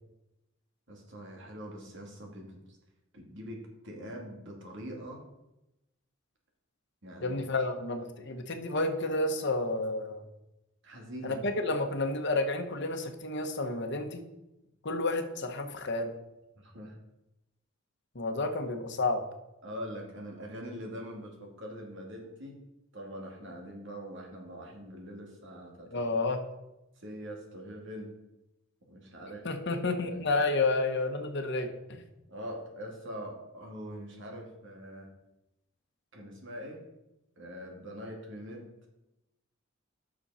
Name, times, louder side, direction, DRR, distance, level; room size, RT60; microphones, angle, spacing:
voice 1, 0.9-2.6 3.1-5.2 7.0-7.5 10.8-11.4 16.6-16.9 19.6-22.6 22.9-26.0 27.0-28.1 28.9-30.2 32.3-35.1 36.1-36.8 37.4-38.7, equal, 60° right, 0 dB, 2.3 m, -43 dB
voice 2, 7.2-10.2 11.2-14.2 14.8-16.1 18.1-19.2 25.9-26.4 29.4-32.0, left 2 dB, 55° left, 6 dB, 1.1 m, -30 dB
10.0 x 6.3 x 5.6 m, 0.93 s
head